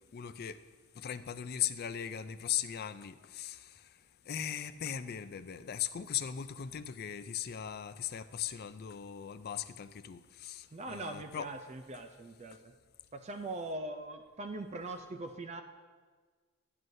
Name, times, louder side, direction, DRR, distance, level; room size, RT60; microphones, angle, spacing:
voice 1, 0.1-0.6 1.0-3.6 4.3-11.5, left 10 dB, 45° left, 12 dB, 0.4 m, -38 dB
voice 2, 10.7-12.7 13.1-15.6, right 2 dB, 30° right, 7 dB, 0.4 m, -41 dB
12.5 x 9.1 x 2.7 m, 1.5 s
head